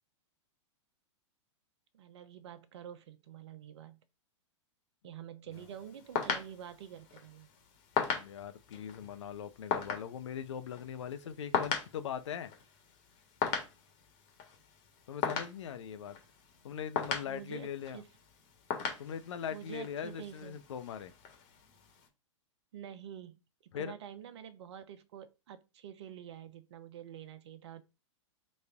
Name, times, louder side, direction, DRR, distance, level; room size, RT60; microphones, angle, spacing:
voice 1, 1.9-4.0 5.0-7.5 17.3-17.7 17.9-18.1 19.5-20.6 22.7-23.4 23.8-27.8, right 9 dB, 60° right, 0.7 m, -47 dB
sound 1, 5.5-22.1, left 7 dB, 45° left, 1.2 m, -39 dB
voice 2, 8.0-12.5 15.1-16.2 16.6-18.0 19.0-21.1 23.7-24.0, left 8 dB, 70° left, 0.5 m, -41 dB
4.0 x 2.6 x 3.4 m
hypercardioid pair, 105°, 16 cm